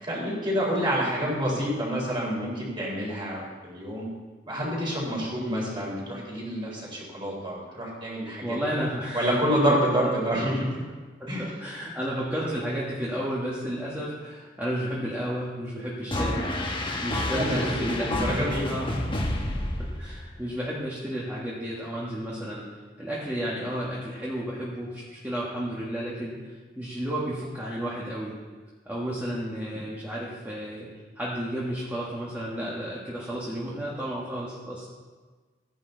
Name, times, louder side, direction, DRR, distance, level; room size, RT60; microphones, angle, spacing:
voice 1, 0.0-4.0 4.5-8.6 9.1-10.8 11.3-11.5 17.3-19.0, equal, 25° right, -4 dB, 4.0 m, -28 dB
voice 2, 8.4-9.4 9.7-10.1 10.8-10.9 11.2-18.9 19.3-19.4 19.8-22.6 23.0-26.4 26.7-28.4 28.8-30.9 31.1-34.9, equal, 10° right, -7 dB, 1.7 m, -32 dB
sound 1, 16.1-20.4, left 1 dB, 30° left, 1.4 m, -29 dB
15.0 x 10.5 x 4.0 m, 1.4 s
head